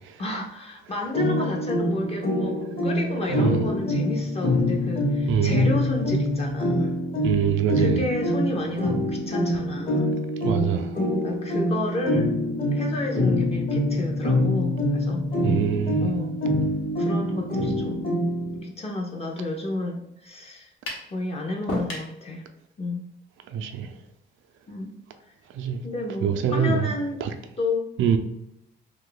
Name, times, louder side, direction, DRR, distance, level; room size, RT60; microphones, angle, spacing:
voice 1, 0.2-7.0 7.7-10.1 11.2-12.3 12.7-15.2 16.0-16.4 17.0-18.2 18.6-20.7 21.1-22.5 22.8-23.1 24.7-24.9 25.8-27.2 27.6-27.9, left 2 dB, 30° left, 0.5 m, -31 dB
sound 1, 1.1-18.6, left 1 dB, 45° left, 0.9 m, -25 dB
voice 2, 5.3-5.6 7.2-8.0 10.4-10.9 15.4-16.1 23.5-23.9 25.6-25.8 26.2-26.8 27.2-27.3 28.0-28.2, right 8 dB, 80° right, 0.4 m, -24 dB
sound 2, 20.9-21.1 21.7-22.1, left 1 dB, 80° left, 0.9 m, -31 dB
2.6 x 2.3 x 3.7 m
cardioid pair, 90°, 20 cm